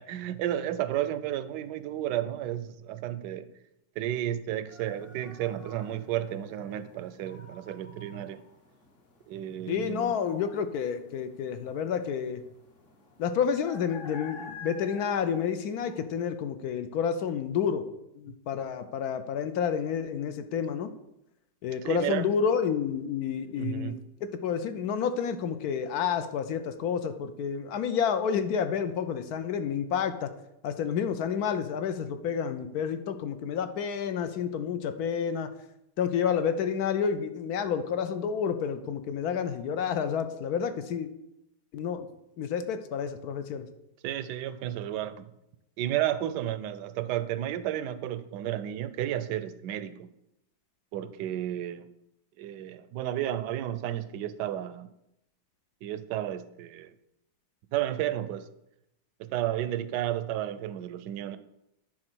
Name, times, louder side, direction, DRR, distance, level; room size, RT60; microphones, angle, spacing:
voice 1, 0.0-3.5 4.0-8.4 9.3-10.1 21.8-22.3 23.6-24.0 44.0-45.3 45.8-50.1 50.9-51.9 52.4-54.9 55.8-56.9 57.7-58.5 59.2-61.4, right 12 dB, 75° right, 1.1 m, -32 dB
sound 1, 4.7-16.0, left 3 dB, 35° left, 1.1 m, -50 dB
voice 2, 9.7-12.4 13.2-17.8 18.2-20.9 21.6-30.3 30.6-35.5 36.0-41.1 41.7-42.1 42.4-43.7, left 7 dB, 65° left, 1.1 m, -30 dB
9.9 x 3.8 x 6.1 m
omnidirectional pair, 2.0 m